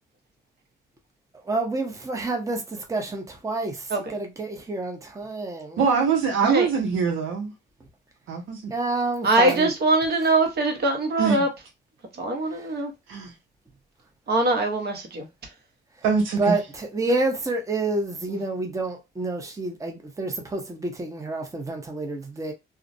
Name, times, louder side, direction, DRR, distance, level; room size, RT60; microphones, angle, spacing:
voice 1, 1.4-5.8 8.7-9.7 12.5-12.7 16.4-22.5, right 2 dB, 15° right, 0.7 m, -28 dB
voice 2, 5.8-7.5 8.3-8.7 11.2-11.5 13.1-13.3 16.0-16.6, right 5 dB, 85° right, 0.6 m, -23 dB
voice 3, 9.2-11.5 12.2-12.9 14.3-15.2, right 2 dB, 55° right, 0.9 m, -22 dB
2.4 x 2.0 x 2.5 m
cardioid pair, 90°, 20 cm